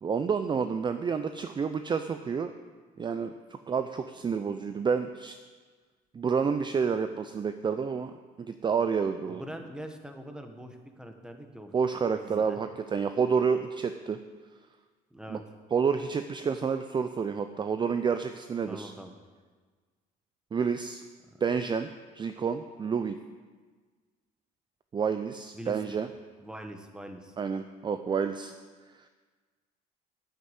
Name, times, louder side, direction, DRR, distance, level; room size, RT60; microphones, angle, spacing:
voice 1, 0.0-2.5 3.0-3.3 3.7-5.3 6.1-8.1 8.4-9.4 11.7-14.2 15.3-15.4 15.7-18.9 20.5-21.0 21.4-21.9 22.2-23.2 24.9-26.1 27.4-28.5, right 6 dB, 25° right, 9 dB, 0.5 m, -29 dB
voice 2, 9.3-11.7 12.1-12.6 15.1-15.4 18.7-19.1 21.3-21.4 25.5-26.0 26.4-27.4, right 1 dB, 5° right, 5 dB, 1.3 m, -43 dB
9.5 x 8.3 x 8.1 m, 1.4 s
cardioid pair, 110°, 17 cm